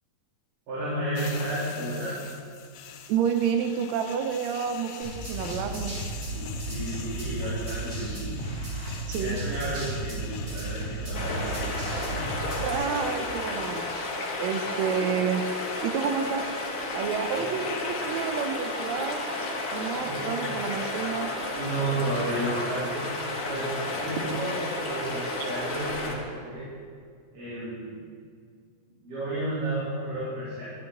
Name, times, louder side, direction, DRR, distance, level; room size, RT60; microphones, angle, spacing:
voice 1, 0.7-2.2 6.6-8.1 9.2-10.2 10.5-11.7 17.3-17.5 20.1-20.6 21.5-23.0 23.5-26.6 27.3-28.0 29.0-30.6, right 1 dB, 70° right, -11 dB, 4.9 m, -32 dB
sound 1, 1.1-20.1, left 8 dB, 85° left, 2.5 m, -45 dB
voice 2, 3.1-5.9 9.1-9.4 12.6-13.9 14.4-15.4 15.8-16.5 16.9-19.2 19.7-21.3, right 7 dB, 85° right, 6 dB, 1.5 m, -29 dB
sound 2, 5.0-12.7, right 2 dB, 30° right, 3.7 m, -34 dB
sound 3, 11.1-26.1, left 2 dB, 65° left, 0.8 m, -32 dB
13.5 x 11.0 x 3.9 m, 2.1 s
omnidirectional pair, 4.0 m